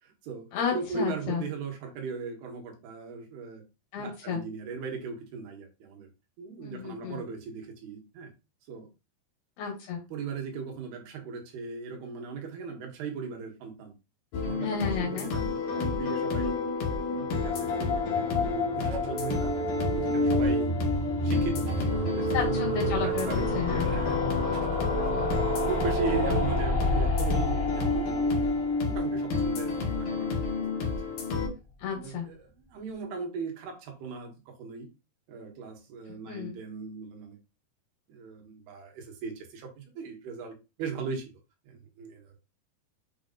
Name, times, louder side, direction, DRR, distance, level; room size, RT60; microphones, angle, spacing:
voice 1, 0.0-3.6 4.0-6.1 6.4-8.3 8.7-8.9 10.1-13.9 14.4-16.6 17.1-19.6 19.9-20.9 21.2-22.3 22.8-28.3 28.8-31.1 31.9-34.9 35.3-37.4 38.1-41.4 41.7-42.3, right 5 dB, 80° right, 3 dB, 3.7 m, -38 dB
voice 2, 0.5-1.4 3.9-4.4 6.6-7.2 9.6-10.0 14.6-15.3 22.3-23.3 23.6-23.9 24.5-24.8 25.1-25.3 31.8-32.3 36.3-36.5, left 6 dB, 80° left, -1 dB, 3.9 m, -32 dB
sound 1, 14.3-31.5, left 4 dB, 65° left, 2.9 m, -30 dB
sound 2, 17.3-30.3 30.6-30.7 30.9-31.0 31.2-31.3, left 1 dB, 15° left, 3.0 m, -32 dB
sound 3, 18.8-20.7 21.7-23.7 24.5-26.4, right 9 dB, 60° right, 2.6 m, -34 dB
8.2 x 5.4 x 2.5 m, 0.28 s
omnidirectional pair, 4.4 m